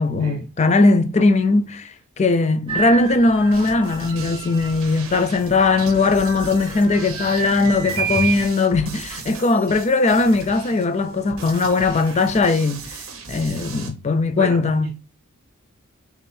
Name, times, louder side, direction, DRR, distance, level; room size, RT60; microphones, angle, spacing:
voice 1, 0.0-13.0 13.3-14.9, left 3 dB, 30° left, 0.4 m, -19 dB
sound 1, 2.7-8.5, right 5 dB, 25° right, 1.1 m, -30 dB
sound 2, 3.5-13.9, right 4 dB, 65° right, 1.0 m, -37 dB
voice 2, 14.4-14.9, right 4 dB, 85° right, 0.5 m, -32 dB
4.3 x 3.0 x 3.3 m
head